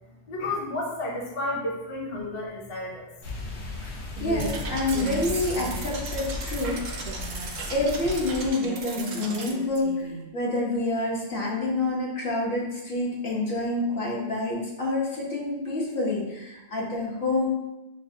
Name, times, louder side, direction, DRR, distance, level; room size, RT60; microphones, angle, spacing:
voice 1, 0.3-3.1, left 2 dB, 35° left, -3 dB, 0.6 m, -31 dB
sound 1, 3.2-8.5, left 2 dB, 80° left, 1.0 m, -36 dB
voice 2, 4.2-7.1 7.7-17.4, left 2 dB, 60° left, -3 dB, 1.1 m, -28 dB
Female speech woman speaking, 4.2-4.5 4.9-6.1 7.0-8.2 8.6-10.3, right 4 dB, 75° right, 0.9 m, -37 dB
sound 2, 4.4-9.5, right 3 dB, 50° right, 0.5 m, -38 dB
6.5 x 2.2 x 2.7 m, 0.96 s
omnidirectional pair, 1.1 m